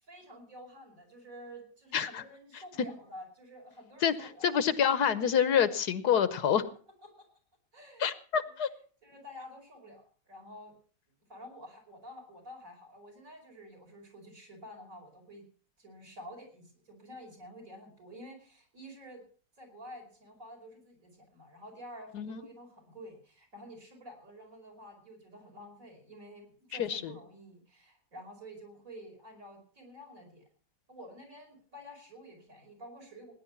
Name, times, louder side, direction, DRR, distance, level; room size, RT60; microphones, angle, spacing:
voice 1, 0.0-4.5 7.0-7.1 7.7-8.1 8.4-8.5 9.0-10.7 11.3-15.4 15.8-19.2 19.6-30.4 30.9-33.3, equal, 55° right, 1 dB, 5.4 m, -50 dB
voice 2, 1.9-2.2 4.0-6.7 8.0-8.7 22.1-22.4 26.8-27.1, left 8 dB, 80° left, 14 dB, 1.5 m, -27 dB
18.0 x 10.0 x 5.8 m, 0.42 s
omnidirectional pair, 1.7 m